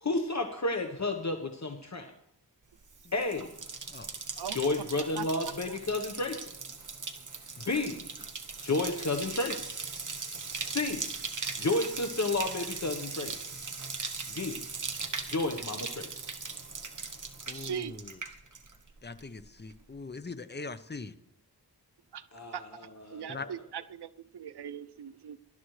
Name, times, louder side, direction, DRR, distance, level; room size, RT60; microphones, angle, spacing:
voice 1, 0.0-2.1 3.1-3.6 4.5-6.5 7.6-8.1 8.6-9.7 10.6-11.1 11.6-13.4 14.3-14.6 15.3-16.2 22.3-22.7 23.0-23.5, left 2 dB, 45° left, 5 dB, 1.2 m, -31 dB
Bathtub (filling or washing), 2.8-18.9 19.2-19.7, right 4 dB, 50° right, 1.3 m, -39 dB
voice 2, 5.1-5.5 17.5-18.0 22.1-22.3 22.5-22.6 23.1-25.4, right 8 dB, 90° right, 14 dB, 0.7 m, -39 dB
voice 3, 17.5-18.1 19.0-21.1 23.3-23.5, left 4 dB, 25° left, 12 dB, 0.8 m, -41 dB
19.0 x 12.0 x 3.2 m, 0.75 s
wide cardioid pair, 75°, 39 cm